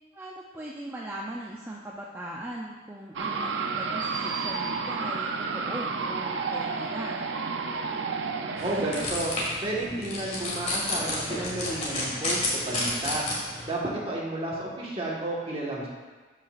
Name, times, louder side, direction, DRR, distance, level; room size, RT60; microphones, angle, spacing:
voice 1, 0.1-7.2, right 1 dB, 15° right, -4 dB, 0.5 m, -39 dB
sound 1, 3.2-9.1, right 4 dB, 90° right, 0.6 m, -31 dB
sound 2, 8.6-13.6, left 1 dB, 35° left, 2.0 m, -31 dB
voice 2, 8.6-9.3 9.6-13.2 13.6-15.9, right 2 dB, 35° right, -4 dB, 1.5 m, -32 dB
12.5 x 5.7 x 2.5 m, 1.4 s
head